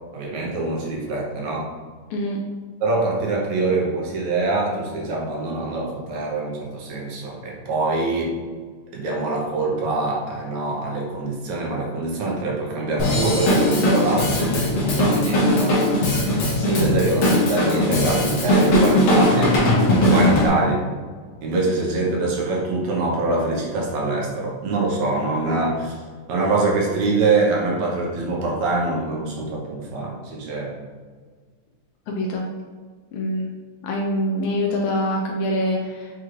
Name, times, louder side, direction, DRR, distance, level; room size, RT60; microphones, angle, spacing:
voice 1, 0.1-1.7 2.8-8.3 8.9-15.8 16.7-19.5 20.1-20.8 21.4-26.0 26.3-30.7, right 3 dB, 75° right, -3 dB, 2.1 m, -24 dB
Drum kit / Drum, 13.0-20.5, left 1 dB, 65° left, 1.5 m, -19 dB
voice 2, 16.6-16.9 20.2-20.6 32.1-32.5 33.1-33.5 33.8-36.1, left 1 dB, 80° left, 0 dB, 1.7 m, -25 dB
6.3 x 3.1 x 2.4 m, 1.6 s
omnidirectional pair, 3.6 m